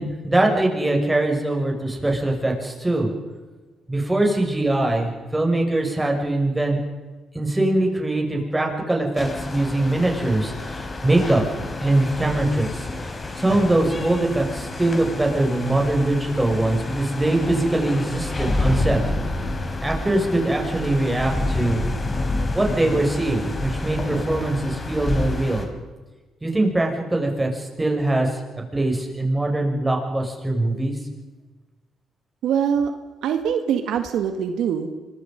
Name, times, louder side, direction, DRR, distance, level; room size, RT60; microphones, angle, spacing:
voice 1, 0.0-3.1 3.9-6.8 7.3-12.9 13.4-19.0 19.8-21.8 22.5-25.7 26.4-28.4 28.7-31.0, right 2 dB, 15° right, 1 dB, 6.5 m, -22 dB
sound 1, 9.2-25.7, left 2 dB, 30° left, 4.1 m, -29 dB
voice 2, 32.4-32.9 33.2-34.9, right 8 dB, 80° right, 7 dB, 2.0 m, -23 dB
25.5 x 23.5 x 5.4 m, 1.2 s
cardioid pair, 90°, 0 cm